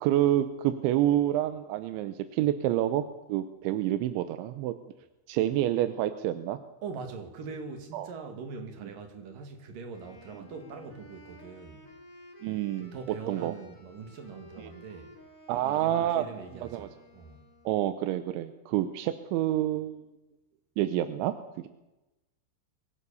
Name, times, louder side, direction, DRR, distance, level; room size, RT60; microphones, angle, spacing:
voice 1, 0.0-4.7 5.3-6.6 7.9-8.1 12.4-12.9 13.3-13.5 15.5-16.2 16.7-16.9 17.7-20.1 20.8-21.3, right 12 dB, 80° right, 3.1 m, -28 dB
voice 2, 6.8-11.9 12.8-15.1 15.6-17.4, right 5 dB, 50° right, 3.6 m, -42 dB
Wind instrument woodwind instrument, 9.9-18.0, left 2 dB, 20° left, 3.0 m, -53 dB
24.5 x 17.5 x 7.0 m
omnidirectional pair, 5.5 m